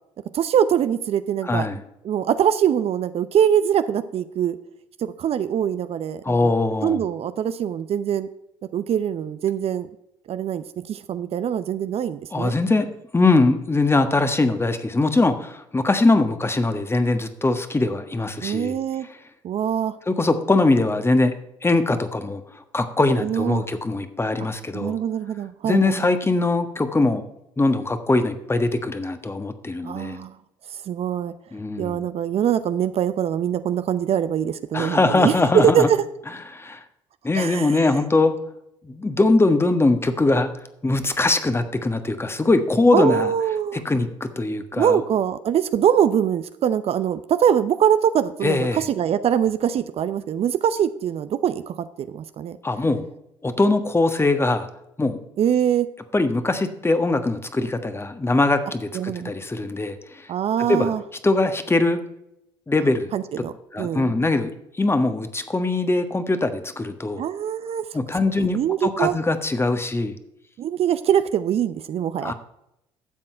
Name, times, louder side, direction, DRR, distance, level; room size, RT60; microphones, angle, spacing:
voice 1, 0.3-1.7 2.0-4.6 5.0-6.5 6.8-8.3 8.7-9.9 10.3-12.5 18.4-19.1 19.4-20.0 23.2-23.6 24.7-26.1 29.8-30.4 30.9-31.3 31.8-35.4 35.6-36.0 37.3-37.9 42.9-43.8 44.8-52.6 55.4-55.9 58.9-59.3 60.3-61.0 63.1-63.5 63.8-64.1 67.2-67.8 68.4-69.2 70.6-72.3, right 9 dB, 50° right, 12 dB, 0.7 m, -23 dB
voice 2, 1.4-1.8 6.2-7.0 12.3-18.7 20.1-21.3 21.6-25.0 25.6-27.2 27.6-30.2 31.5-32.1 34.7-35.9 36.5-36.8 37.2-38.3 38.8-40.5 40.8-43.3 43.7-45.0 48.4-48.8 52.6-53.0 53.4-54.7 55.0-55.2 56.1-60.3 60.7-60.9 61.2-62.0 62.7-63.1 63.7-64.5 64.8-67.2 67.9-70.1 72.2-72.3, left 2 dB, 20° left, 9 dB, 1.4 m, -21 dB
12.5 x 7.7 x 4.5 m, 0.81 s
hypercardioid pair, 55°, 13 cm